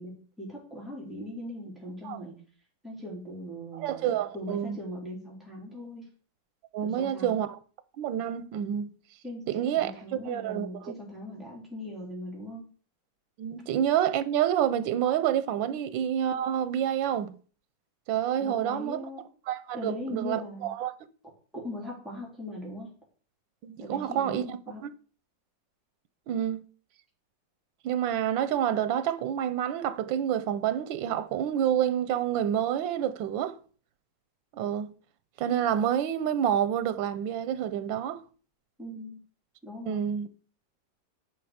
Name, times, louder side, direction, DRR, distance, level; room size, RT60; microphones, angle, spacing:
voice 1, 0.0-2.4 2.8-6.1 6.8-7.3 9.2-12.7 15.7-15.8 18.4-19.2 19.7-20.7 21.5-22.9 23.8-24.8 38.8-39.2 39.6-40.1, left 1 dB, ahead, 3.5 m, -40 dB
voice 2, 3.8-4.8 6.7-7.6 8.0-8.9 9.5-9.9 10.2-10.9 13.4-17.3 18.1-19.0 19.5-20.9 23.6-24.9 26.3-26.6 27.8-33.6 34.5-34.9 35.4-38.2 39.9-40.3, right 10 dB, 90° right, 1.4 m, -28 dB
10.5 x 5.0 x 5.0 m
omnidirectional pair, 2.0 m